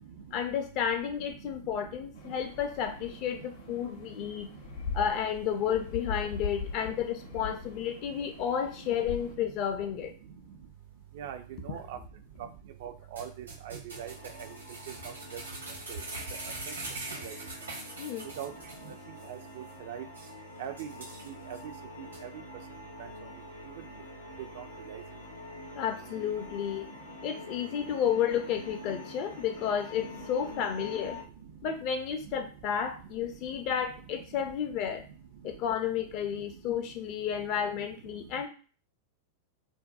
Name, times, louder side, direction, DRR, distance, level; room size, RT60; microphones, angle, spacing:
voice 1, 0.3-4.5 4.9-10.1 18.0-18.3 25.7-26.9 27.2-31.2 31.6-35.0 35.4-38.5, left 8 dB, 45° left, 6 dB, 0.5 m, -32 dB
sound 1, 2.1-9.3, left 5 dB, 65° left, 0.9 m, -41 dB
voice 2, 11.2-12.0 12.4-12.5 12.8-14.1 15.3-15.4 15.9-16.0 17.2-17.3 18.4-18.5 19.3-20.0 20.6-20.9 21.3-21.6 22.2-22.3 23.0-23.1 24.6-25.0, right 10 dB, 55° right, 7 dB, 0.3 m, -40 dB
sound 2, 13.2-18.9 19.2-19.3 19.7-19.8 20.1-20.3 20.8-21.6 22.1-22.2, right 2 dB, 80° right, 0.9 m, -42 dB
sound 3, 13.9-31.2, left 2 dB, 90° left, 0.7 m, -47 dB
2.6 x 2.1 x 2.3 m, 0.38 s
figure-of-eight pair, 95°, 0 cm